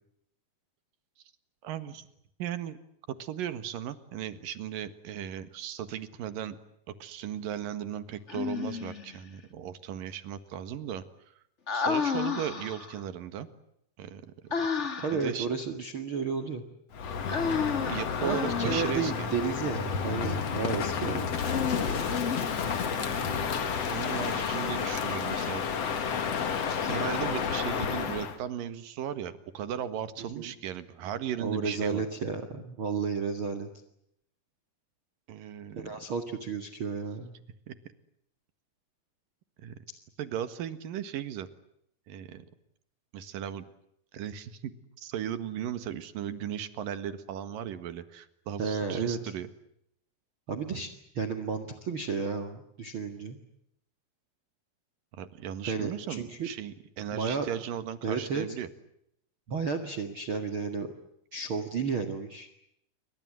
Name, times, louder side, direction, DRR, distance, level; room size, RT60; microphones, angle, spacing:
voice 1, 1.6-2.1 2.4-2.8 3.1-6.6 7.0-11.0 11.7-13.5 14.0-14.7 15.1-15.5 17.9-19.3 22.8-23.6 23.9-25.6 26.5-32.0 35.3-35.9 37.7-37.8 39.6-39.7 40.2-41.5 42.1-42.4 43.1-43.6 44.1-44.7 45.0-49.5 55.1-58.7, right 10 dB, 65° right, 12 dB, 3.2 m, -37 dB
Human voice, 8.3-9.2 11.7-13.0 14.5-15.3 17.3-19.1 21.3-22.9, left 5 dB, 30° left, 1.3 m, -32 dB
voice 2, 15.0-16.6 18.2-21.4 30.4-30.5 31.4-33.7 35.8-37.3 48.6-49.2 50.5-50.9 51.1-53.4 55.7-56.5 57.1-57.5 58.0-58.5 59.5-60.9 61.3-62.5, right 5 dB, 40° right, 7 dB, 2.2 m, -32 dB
Crow, 16.9-28.4, left 6 dB, 45° left, 2.7 m, -31 dB
28.5 x 24.5 x 7.6 m, 0.75 s
omnidirectional pair, 4.4 m